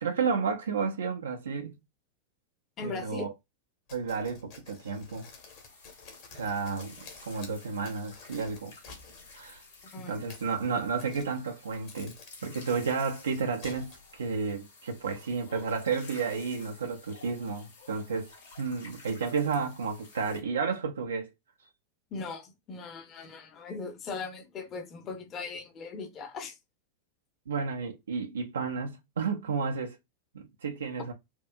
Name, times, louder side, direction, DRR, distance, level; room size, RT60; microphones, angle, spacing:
voice 1, 0.0-1.7 2.8-3.3 3.9-5.3 6.3-8.7 9.3-9.6 10.1-12.2 12.4-18.3 18.6-21.3 27.5-30.0 30.3-31.1, right 5 dB, 70° right, 0.5 m, -32 dB
voice 2, 2.8-3.3 9.9-10.3 22.1-26.6, left 4 dB, 30° left, 0.8 m, -39 dB
sound 1, 3.9-9.4 10.1-10.5 11.0-11.5 11.9-12.9 13.6-14.2, left 5 dB, 45° left, 1.2 m, -51 dB
sound 2, 4.9-20.4, left 3 dB, 65° left, 1.8 m, -52 dB
4.4 x 2.4 x 2.2 m
figure-of-eight pair, 90°, 0 cm